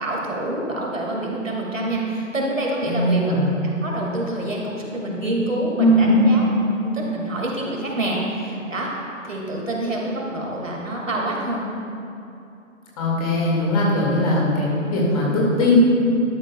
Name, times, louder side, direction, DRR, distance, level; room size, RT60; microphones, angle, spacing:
voice 1, 0.0-3.4 3.6-6.5 6.8-8.9 9.2-11.7, right 1 dB, 70° right, -2 dB, 2.1 m, -27 dB
voice 2, 2.8-3.5 5.8-6.4 13.0-15.8, left 1 dB, 25° left, -5 dB, 2.0 m, -19 dB
12.0 x 10.5 x 2.2 m, 2.8 s
figure-of-eight pair, 140°, 40 cm